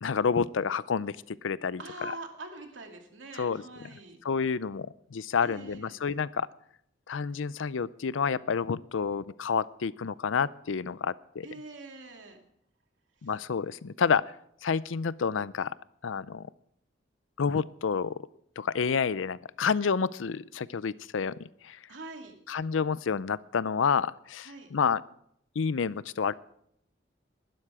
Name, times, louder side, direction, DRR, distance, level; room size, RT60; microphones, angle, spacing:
voice 1, 0.0-2.1 3.4-3.6 4.2-6.5 7.1-11.5 13.2-14.3 14.6-15.7 16.0-16.5 17.4-18.1 18.6-21.8 22.5-25.0 25.6-26.3, left 6 dB, 90° left, 19 dB, 0.5 m, -29 dB
voice 2, 1.8-4.2 5.4-6.0 11.4-12.4 21.9-22.4 24.4-24.7, right 2 dB, 80° right, 4 dB, 2.4 m, -44 dB
19.5 x 12.0 x 4.9 m, 0.73 s
head